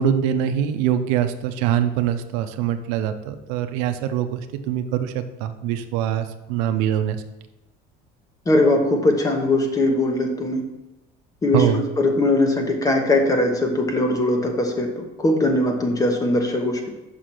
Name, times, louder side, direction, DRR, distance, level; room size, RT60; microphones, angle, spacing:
voice 1, 0.0-7.2 11.5-11.8, right 9 dB, 85° right, 9 dB, 0.7 m, -23 dB
voice 2, 8.5-10.6 11.4-11.6 12.0-17.0, left 2 dB, 20° left, 3 dB, 1.0 m, -20 dB
5.9 x 4.9 x 5.9 m, 0.98 s
cardioid pair, 135°, 19 cm